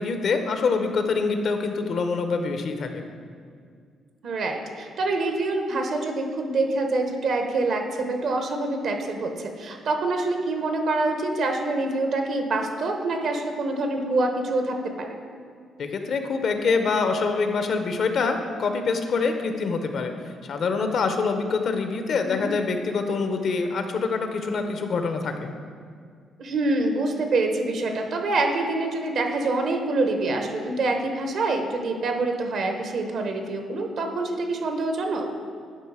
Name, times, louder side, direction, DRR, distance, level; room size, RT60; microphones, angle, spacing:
voice 1, 0.0-3.1 15.8-20.1 20.4-25.5, left 4 dB, 60° left, 6 dB, 0.7 m, -25 dB
voice 2, 4.2-15.2 22.2-22.5 26.4-35.3, right 2 dB, 65° right, 4 dB, 1.0 m, -26 dB
10.5 x 4.1 x 4.8 m, 2.1 s
cardioid pair, 90°, 0 cm